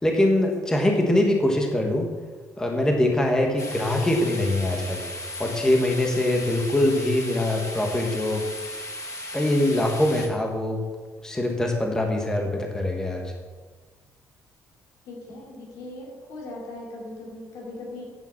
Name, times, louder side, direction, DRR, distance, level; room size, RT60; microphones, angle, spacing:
voice 1, 0.0-2.1 2.6-5.0 5.4-8.4 9.3-10.8 11.2-13.3, left 1 dB, 10° left, 1 dB, 1.3 m, -23 dB
sound 1, 3.6-10.3, left 1 dB, 55° left, 1.5 m, -36 dB
voice 2, 15.0-18.0, left 2 dB, 90° left, -3 dB, 3.9 m, -39 dB
9.0 x 6.8 x 7.2 m, 1.4 s
cardioid pair, 145°, 6 cm